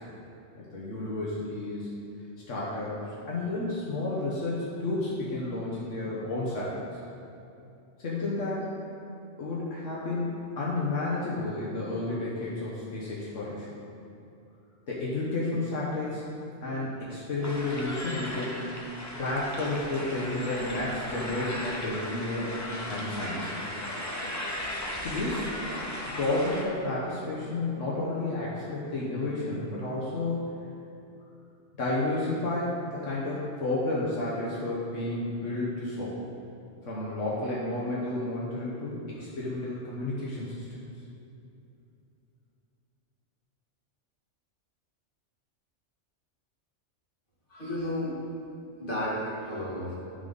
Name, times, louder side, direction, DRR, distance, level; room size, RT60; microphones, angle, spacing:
voice 1, 0.7-1.9 2.5-6.8 8.0-8.7 9.4-10.3 10.6-13.7 14.9-16.2 16.6-18.8 19.2-22.6 22.9-23.7 25.0-25.5 26.2-30.5 31.8-36.2 36.8-40.6, left 2 dB, 80° left, -6 dB, 1.5 m, -31 dB
sound 1, 17.4-26.6, left 1 dB, 15° left, 0.9 m, -36 dB
voice 2, 47.5-48.2 48.8-49.9, left 1 dB, 45° left, -7 dB, 2.2 m, -32 dB
12.0 x 4.0 x 5.3 m, 2.7 s
omnidirectional pair, 1.3 m